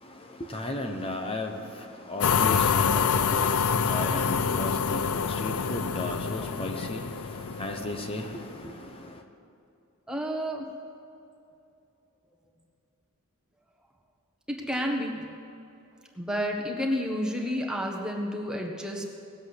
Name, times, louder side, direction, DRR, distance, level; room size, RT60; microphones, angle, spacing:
voice 1, 0.0-9.2, left 1 dB, 25° left, 4 dB, 1.0 m, -35 dB
sound 1, 2.2-8.4, left 6 dB, 80° left, 0.5 m, -26 dB
voice 2, 10.1-10.6 14.5-15.3 16.1-19.0, equal, 5° right, 0 dB, 1.5 m, -30 dB
18.5 x 7.9 x 8.1 m, 2.7 s
head